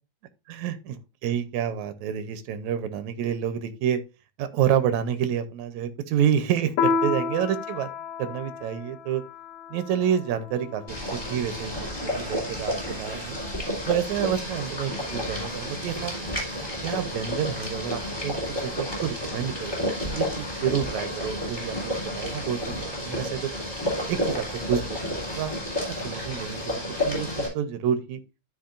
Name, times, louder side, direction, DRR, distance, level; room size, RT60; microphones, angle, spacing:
voice 1, 0.5-1.0 1.2-4.0 4.4-7.9 8.2-9.2 9.7-12.7 13.0-13.4 13.9-16.1 16.8-18.3 18.6-23.5 24.1-25.5 25.8-28.2, right 9 dB, 75° right, 2.2 m, -28 dB
Piano, 6.8-11.7, left 5 dB, 80° left, 1.3 m, -31 dB
Boiling, 10.9-27.5, equal, 5° left, 3.4 m, -31 dB
13.5 x 5.1 x 2.5 m
omnidirectional pair, 3.5 m